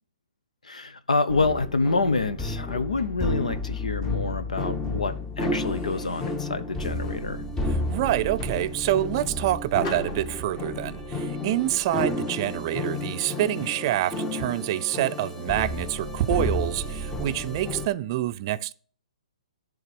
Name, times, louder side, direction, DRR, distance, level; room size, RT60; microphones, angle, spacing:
voice 1, 0.6-7.4, left 3 dB, 85° left, 0.9 m, -27 dB
sound 1, 1.3-17.9, left 2 dB, 10° left, 0.8 m, -31 dB
sound 2, 2.0-3.8 4.2-4.4 4.9-5.1 5.6-6.6 7.2-7.5 8.2-9.2 9.8-10.8 11.6-14.0 14.2-14.5 15.1-15.2 15.6-16.1, left 2 dB, 40° left, 2.4 m, -48 dB
voice 2, 7.7-18.7, right 14 dB, 40° right, 0.4 m, -27 dB
10.5 x 3.8 x 5.2 m
hypercardioid pair, 135°, 4 cm